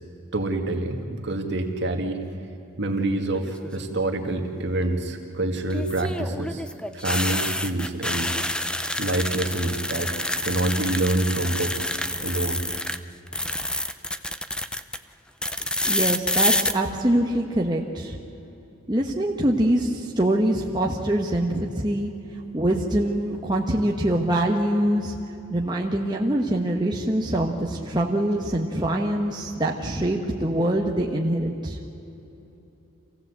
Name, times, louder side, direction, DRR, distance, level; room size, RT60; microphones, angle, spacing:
voice 1, 0.3-2.2 2.8-6.6 6.9-8.3 9.0-10.1 10.4-11.9 12.2-12.6, right 2 dB, 55° right, 3 dB, 2.2 m, -26 dB
sound 1, 3.3-3.8 5.7-13.0 13.3-15.0 15.4-16.7, left 1 dB, 5° left, 0.5 m, -27 dB
voice 2, 15.8-18.1 18.9-22.1 22.5-25.2 25.5-31.8, right 1 dB, 20° right, -1 dB, 1.2 m, -24 dB
26.5 x 16.0 x 8.2 m, 3.0 s
head